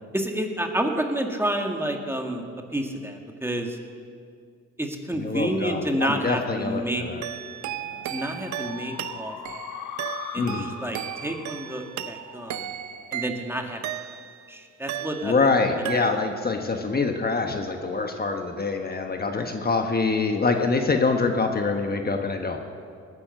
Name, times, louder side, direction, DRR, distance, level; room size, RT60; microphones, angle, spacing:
voice 1, 0.1-2.4 2.7-3.8 4.8-7.0 8.1-9.6 10.3-12.7 13.1-14.2 14.5-15.3 15.8-16.1, right 1 dB, 10° right, 3 dB, 1.8 m, -29 dB
voice 2, 5.2-7.2 10.4-10.7 15.2-22.6, left 4 dB, 30° left, 4 dB, 1.2 m, -25 dB
sound 1, 5.5-14.4, left 7 dB, 75° left, 1.3 m, -42 dB
sound 2, 7.2-14.5 14.9-15.6 15.9-16.5, right 12 dB, 70° right, 0.7 m, -35 dB
19.0 x 9.7 x 6.6 m, 2.2 s
cardioid pair, 90°, 30 cm